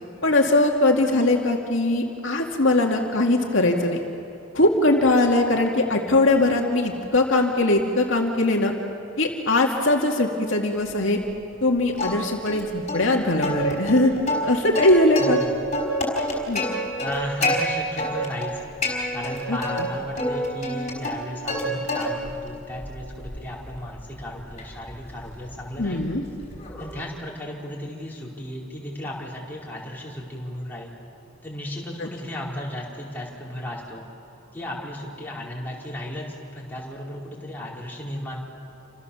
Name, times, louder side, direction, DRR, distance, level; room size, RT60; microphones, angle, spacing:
voice 1, 0.2-4.0 4.5-8.7 9.2-11.2 11.6-14.1 14.4-15.4 16.5-16.7 19.5-19.9 25.8-26.2 32.0-32.1, left 2 dB, 65° left, 0 dB, 2.3 m, -21 dB
Plucked string instrument, 12.0-12.6 12.9-13.0 13.4-15.4 15.7-17.6 18.0-18.5 18.8-19.8 20.2-21.6 21.9-22.4 22.8-27.0, left 1 dB, 35° left, 5.1 m, -28 dB
voice 2, 17.0-18.6 19.1-26.0 26.8-30.9 31.4-34.0 34.5-36.3 36.5-38.4, left 1 dB, 10° left, -5 dB, 4.8 m, -35 dB
29.0 x 27.0 x 7.2 m, 2.9 s
head